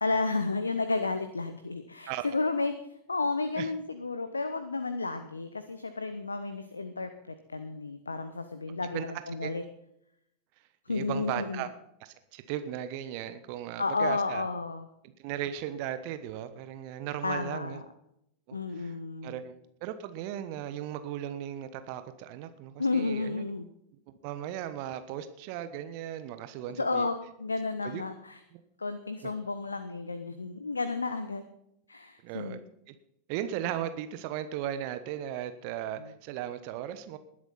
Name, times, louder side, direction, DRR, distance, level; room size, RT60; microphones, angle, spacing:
voice 1, 0.0-2.7 3.1-9.6 10.9-11.6 13.8-14.9 17.2-17.8 18.5-19.4 22.8-23.7 26.8-28.4 28.8-31.4 31.9-32.6 35.9-36.1, left 3 dB, 80° left, 10 dB, 0.9 m, -32 dB
voice 2, 10.9-11.7 12.0-14.4 15.2-17.8 18.5-18.9 19.2-19.5 19.8-23.4 24.2-27.1 27.8-28.0 29.2-29.3 32.2-32.6 32.9-33.0 33.3-37.2, right 11 dB, 45° right, 11 dB, 1.1 m, -36 dB
19.5 x 11.0 x 4.3 m, 0.78 s
figure-of-eight pair, 90°, 0 cm